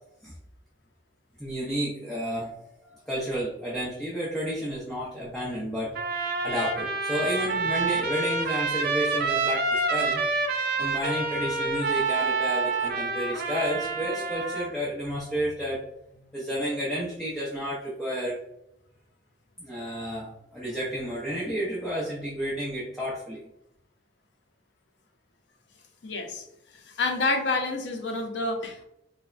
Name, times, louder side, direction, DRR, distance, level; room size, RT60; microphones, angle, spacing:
voice 1, 1.4-2.5 2.8-10.2 10.8-15.8 16.3-18.4 19.6-23.4, equal, ahead, -8 dB, 0.6 m, -31 dB
Trumpet, 5.9-14.7, right 3 dB, 55° right, 0.4 m, -28 dB
voice 2, 26.0-26.4 26.9-28.9, left 3 dB, 70° left, 4 dB, 0.5 m, -28 dB
3.3 x 2.0 x 2.4 m, 0.82 s
head